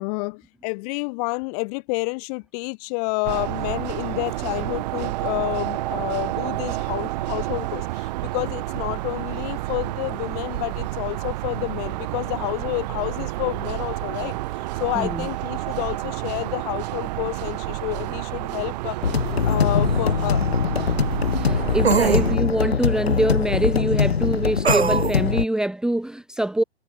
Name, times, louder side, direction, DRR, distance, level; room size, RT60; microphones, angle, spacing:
voice 1, 0.0-14.4 14.8-19.0 19.4-20.4, left 31 dB, 35° left, 5.3 m, -29 dB
sound 1, 3.2-22.4, right 18 dB, 40° right, 2.4 m, -29 dB
voice 2, 15.0-15.3 21.3-26.6, right 1 dB, ahead, 2.1 m, -24 dB
sound 2, 19.0-25.4, left 6 dB, 65° left, 3.7 m, -22 dB
sound 3, 19.5-19.6 21.8-22.3 24.6-25.2, right 5 dB, 70° right, 5.1 m, -20 dB
figure-of-eight pair, 115°, 33 cm